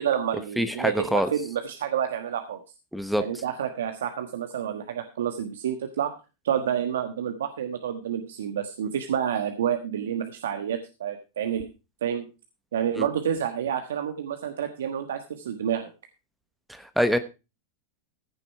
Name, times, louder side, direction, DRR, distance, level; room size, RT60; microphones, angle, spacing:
voice 1, 0.0-2.6 3.2-6.1 6.4-11.7 12.0-12.3 12.7-15.9, right 9 dB, 90° right, 7 dB, 1.3 m, -29 dB
voice 2, 0.6-1.3 2.9-3.2 13.0-13.1 16.7-17.2, equal, ahead, 11 dB, 1.0 m, -25 dB
15.0 x 7.0 x 4.6 m, 0.29 s
supercardioid pair, 135°, 0 cm